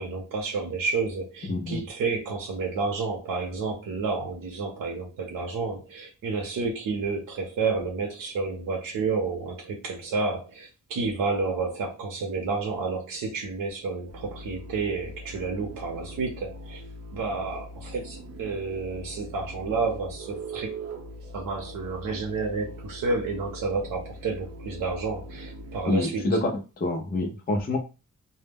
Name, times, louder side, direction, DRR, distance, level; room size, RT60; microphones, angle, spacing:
voice 1, 0.0-16.8 17.1-20.8 21.3-26.3, right 4 dB, 90° right, 0 dB, 0.6 m, -30 dB
voice 2, 1.5-1.9 25.9-27.8, left 2 dB, 30° left, 2 dB, 0.5 m, -27 dB
sound 1, 14.1-25.8, right 1 dB, 50° right, 0.7 m, -41 dB
2.1 x 2.1 x 3.3 m, 0.31 s
wide cardioid pair, 120°, 32 cm